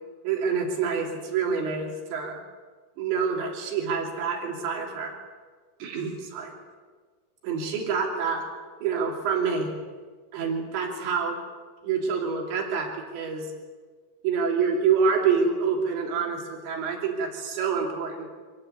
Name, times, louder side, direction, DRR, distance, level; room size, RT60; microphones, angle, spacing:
voice 1, 0.2-2.4 3.0-5.1 5.8-6.5 7.4-8.5 8.8-9.7 10.3-11.4 11.8-13.5 14.2-18.3, right 5 dB, 85° right, 1 dB, 5.3 m, -27 dB
25.5 x 17.0 x 9.5 m, 1.5 s
omnidirectional pair, 4.9 m